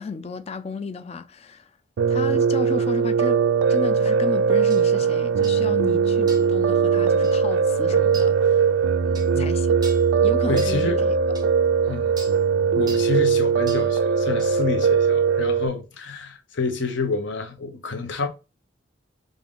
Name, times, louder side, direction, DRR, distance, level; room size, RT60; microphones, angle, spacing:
voice 1, 0.0-1.7 2.1-3.4 3.7-8.7 9.0-9.8 10.2-11.2, left 4 dB, 30° left, 0.3 m, -33 dB
Piano, 2.0-15.7, right 6 dB, 75° right, 0.3 m, -20 dB
sound 1, 4.7-4.8 5.4-5.6 6.3-6.6 7.2-7.4 8.1-8.3 9.1-9.3 9.8-10.1 10.6-10.8 11.3-11.5 12.2-12.4 12.9-13.1 13.7-13.9 14.4-14.5, right 3 dB, 20° right, 0.5 m, -40 dB
voice 2, 10.5-11.0 11.9-12.1 12.7-18.3, left 4 dB, 65° left, 0.7 m, -28 dB
3.6 x 2.5 x 3.5 m
head